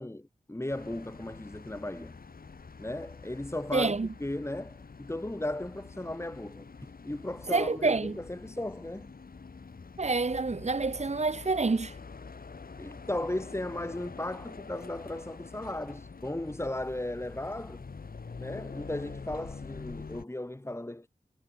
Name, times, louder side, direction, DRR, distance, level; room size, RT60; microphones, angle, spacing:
voice 1, 0.0-2.2 2.8-9.1 12.8-17.8 18.4-21.1, left 1 dB, 15° left, 2.7 m, -36 dB
sound 1, 0.7-20.2, left 4 dB, 70° left, 3.5 m, -46 dB
voice 2, 3.7-4.1 7.5-8.1 10.0-11.9, right 3 dB, 45° right, 1.5 m, -27 dB
cardioid pair, 45°, 15 cm